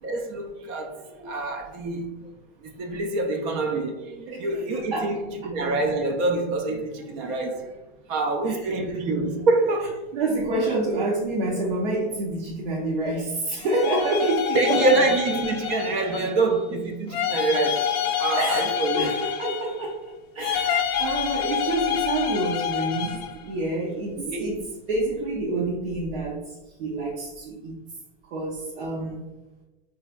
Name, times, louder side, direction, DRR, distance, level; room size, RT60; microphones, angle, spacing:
voice 1, 0.0-2.3 2.6-7.7 8.1-10.0 14.5-19.2 24.2-24.5, right 3 dB, 35° right, 0.4 m, -26 dB
voice 2, 4.9-5.2 8.5-8.7 10.1-15.1 18.3-20.0 20.3-26.5 26.8-27.8 28.3-29.2, right 2 dB, 65° right, 0.9 m, -28 dB
sound 1, 13.6-16.5 17.1-19.9 20.4-23.4, left 9 dB, 45° left, 0.4 m, -27 dB
3.3 x 3.2 x 2.2 m
supercardioid pair, 135°, 29 cm